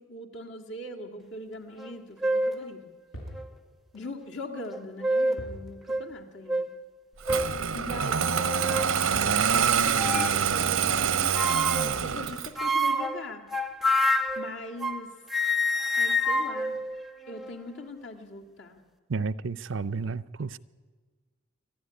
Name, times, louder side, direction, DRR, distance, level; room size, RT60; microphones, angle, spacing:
voice 1, 0.0-2.9 3.9-6.7 7.7-13.4 14.4-15.1 16.0-16.8 17.3-18.8, left 2 dB, 60° left, 2.2 m, -41 dB
sound 1, 1.8-1.9 2.2-2.6 3.3-3.4 4.7-5.5 5.9-6.0 6.5-6.7 7.3-7.6 8.2-9.0 10.0-10.4 11.3-11.9 12.6-15.0 15.3-17.6, left 1 dB, ahead, 0.6 m, -27 dB
sound 2, 3.1-3.5 5.4-5.7 6.0-6.1 7.3-7.6 9.1-9.4, equal, 90° left, 6.1 m, -40 dB
Engine starting, 7.2-12.6, right 7 dB, 90° right, 0.8 m, -25 dB
voice 2, 19.1-20.6, right 4 dB, 70° right, 0.6 m, -31 dB
25.0 x 12.5 x 9.8 m
head